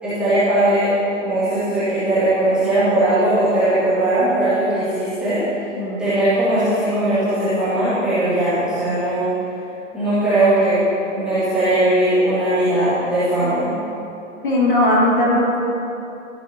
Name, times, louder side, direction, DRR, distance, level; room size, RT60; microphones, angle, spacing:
voice 1, 0.0-0.9 1.2-5.4 6.0-9.3 9.9-10.8 11.1-13.8, right 1 dB, 5° right, -17 dB, 2.2 m, -19 dB
voice 2, 14.4-15.6, left 1 dB, 40° left, -5 dB, 2.5 m, -17 dB
14.5 x 12.0 x 3.0 m, 2.8 s
hypercardioid pair, 180°, 39 cm